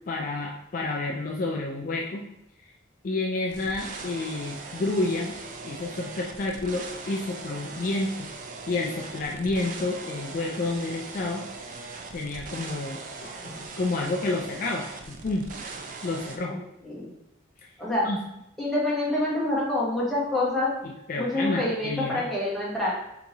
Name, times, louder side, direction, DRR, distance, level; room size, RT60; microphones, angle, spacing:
voice 1, 0.1-2.2 3.0-8.3 8.7-11.8 12.1-15.5 16.0-16.6 17.6-17.7 18.0-18.2 20.8-22.2, left 2 dB, 45° left, 0 dB, 0.4 m, -30 dB
sound 1, 3.5-16.4, right 4 dB, 45° right, 0.4 m, -40 dB
voice 2, 18.6-20.7 21.2-22.9, left 1 dB, ahead, -8 dB, 1.2 m, -26 dB
3.5 x 2.9 x 4.0 m, 0.82 s
head